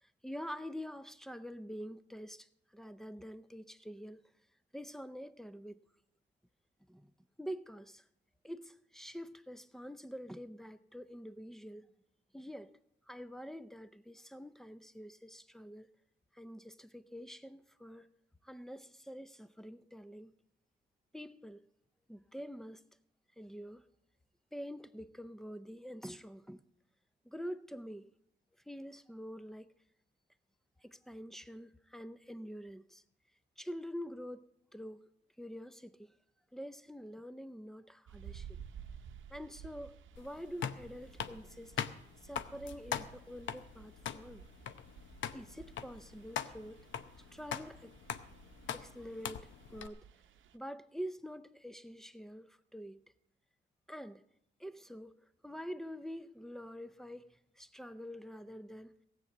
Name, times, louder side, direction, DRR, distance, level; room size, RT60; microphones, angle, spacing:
voice 1, 0.0-4.2 4.7-5.8 6.9-7.1 7.4-8.0 8.4-11.9 12.3-12.7 13.1-15.9 16.3-18.1 18.4-20.3 21.1-21.6 22.1-22.8 23.4-23.8 24.5-26.6 27.2-28.1 28.7-29.7 30.8-33.0 33.6-35.0 35.4-36.1 36.5-38.5 39.3-41.7 42.2-44.4 45.3-46.8 47.2-47.9 48.7-49.4 49.7-50.0 50.5-53.0 53.9-54.2 54.6-55.1 55.4-59.0, equal, ahead, 0.5 m, -46 dB
sound 1, 38.1-50.6, right 8 dB, 85° right, 0.7 m, -54 dB
sound 2, 40.2-49.9, left 8 dB, 75° left, 0.7 m, -42 dB
17.0 x 8.0 x 7.2 m
wide cardioid pair, 150°, 20 cm